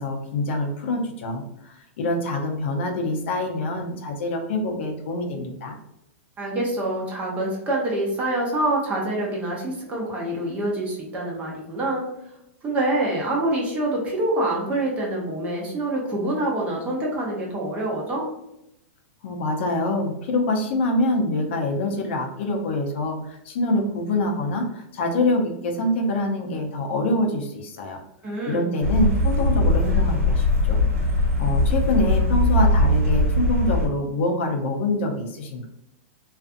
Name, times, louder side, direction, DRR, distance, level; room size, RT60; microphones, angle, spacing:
voice 1, 0.0-5.8 19.2-28.0 28.4-35.7, left 2 dB, 55° left, 3 dB, 0.5 m, -25 dB
voice 2, 6.4-12.1 12.6-18.3 28.2-28.6, right 1 dB, 20° right, -2 dB, 0.6 m, -26 dB
sound 1, 28.8-33.9, left 1 dB, 80° right, 1.0 m, -20 dB
2.5 x 2.4 x 2.4 m, 0.83 s
supercardioid pair, 160°, 7 cm